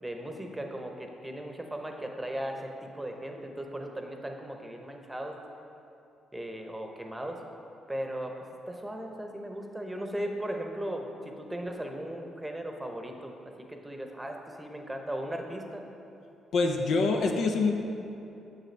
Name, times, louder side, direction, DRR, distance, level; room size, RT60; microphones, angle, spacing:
voice 1, 0.0-5.3 6.3-7.4 7.9-8.3 8.7-13.3 13.7-15.9, right 1 dB, 15° right, 3 dB, 0.9 m, -37 dB
voice 2, 16.5-17.7, left 3 dB, 65° left, 2 dB, 0.5 m, -25 dB
7.2 x 6.5 x 3.3 m, 2.9 s
hypercardioid pair, 50°, 0 cm